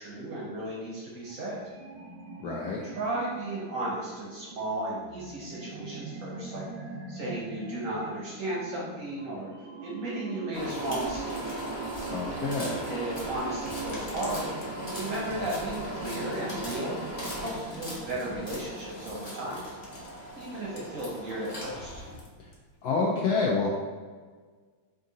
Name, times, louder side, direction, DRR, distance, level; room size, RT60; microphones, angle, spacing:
voice 1, 0.0-1.6 2.8-6.6 7.1-9.5 9.8-11.6 12.8-14.5 14.9-17.0 17.4-19.6 20.3-22.0, right 1 dB, 65° right, -5 dB, 0.8 m, -35 dB
sound 1, 1.2-19.2, right 3 dB, 85° right, 1.5 m, -43 dB
voice 2, 2.4-2.8 12.1-12.8 22.4-22.5 22.8-23.7, left 4 dB, 80° left, -3 dB, 0.9 m, -28 dB
sound 2, 10.5-22.2, right 1 dB, 45° left, 0.4 m, -38 dB
sound 3, 13.4-20.8 21.1-23.0, left 1 dB, 65° left, 1.2 m, -47 dB
3.6 x 2.6 x 3.8 m, 1.5 s
omnidirectional pair, 2.2 m